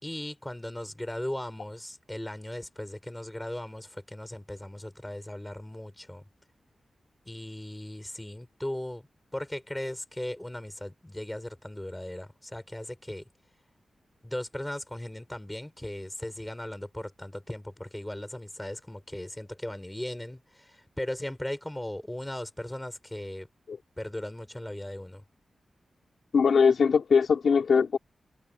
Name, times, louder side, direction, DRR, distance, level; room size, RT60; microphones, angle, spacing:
voice 1, 0.0-6.2 7.3-9.1 9.3-13.2 14.2-23.5 24.0-25.2, left 1 dB, 10° left, 5.3 m, -37 dB
voice 2, 26.3-28.0, left 5 dB, 65° left, 2.8 m, -21 dB
wide cardioid pair, 165°, 0 cm